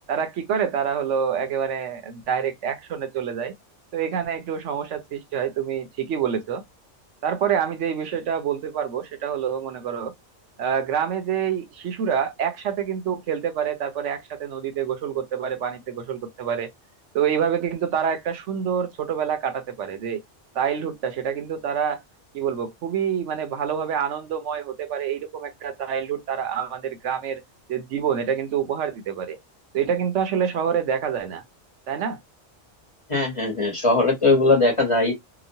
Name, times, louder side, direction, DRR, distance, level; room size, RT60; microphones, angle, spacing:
voice 1, 0.1-3.5 3.9-6.6 7.2-10.1 10.6-16.7 17.1-20.2 20.5-22.0 22.3-27.4 27.7-29.4 29.7-31.4 31.9-32.2, right 8 dB, 80° right, 1.0 m, -27 dB
voice 2, 33.1-35.1, left 2 dB, 30° left, 1.0 m, -20 dB
2.9 x 2.1 x 2.6 m
omnidirectional pair, 1.2 m